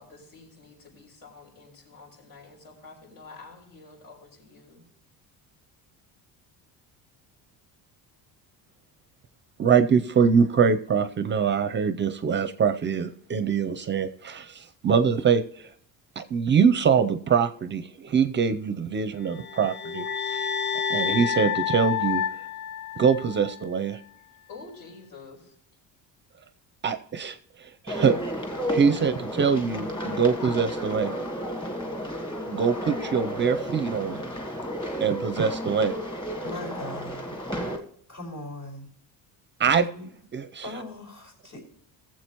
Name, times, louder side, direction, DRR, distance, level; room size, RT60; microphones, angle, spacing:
voice 1, 0.0-4.8 24.5-25.5, left 3 dB, 70° left, -1 dB, 5.2 m, -48 dB
voice 2, 9.6-15.7 16.2-20.6 20.9-22.2 23.0-24.0 26.8-28.1 28.7-31.1 32.5-34.2 35.0-36.0 39.6-39.9 40.3-40.7, right 6 dB, 30° right, 11 dB, 0.5 m, -24 dB
sound 1, 19.3-23.6, left 8 dB, 30° left, 0.4 m, -29 dB
sound 2, 27.9-37.8, equal, 15° left, 1.7 m, -32 dB
voice 3, 36.4-37.4 38.1-38.9 39.9-40.1 40.6-41.6, left 1 dB, 55° left, 2 dB, 4.7 m, -39 dB
19.0 x 7.5 x 3.0 m, 0.64 s
cardioid pair, 155°, 38 cm